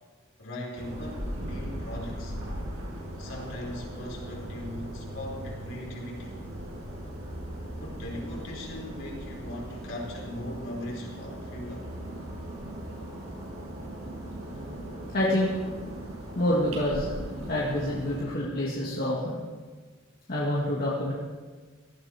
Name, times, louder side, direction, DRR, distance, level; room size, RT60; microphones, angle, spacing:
voice 1, 0.4-2.4 3.2-6.4 7.7-11.9, left 1 dB, 60° left, -2 dB, 4.6 m, -39 dB
sound 1, 0.8-18.2, right 1 dB, 80° right, 5.8 m, -39 dB
voice 2, 15.1-15.5 16.4-17.2 17.5-19.4 20.3-21.1, left 1 dB, 45° left, -5 dB, 2.1 m, -27 dB
18.5 x 14.5 x 4.5 m, 1.4 s
head